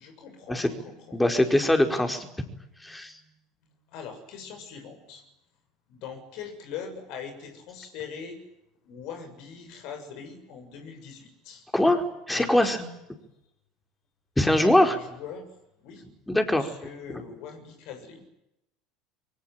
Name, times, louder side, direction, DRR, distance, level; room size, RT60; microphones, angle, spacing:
voice 1, 0.0-1.2 3.1-3.3 3.9-5.2 5.9-8.4 8.8-11.7 12.3-12.8 14.8-15.5 15.8-16.0 16.5-18.2, left 7 dB, 60° left, 6 dB, 7.1 m, -42 dB
voice 2, 1.1-2.3 2.8-3.1 11.7-12.9 14.4-15.0 16.3-16.7, left 1 dB, 10° left, 5 dB, 4.8 m, -22 dB
24.0 x 23.5 x 9.2 m, 0.86 s
hypercardioid pair, 70°, 0 cm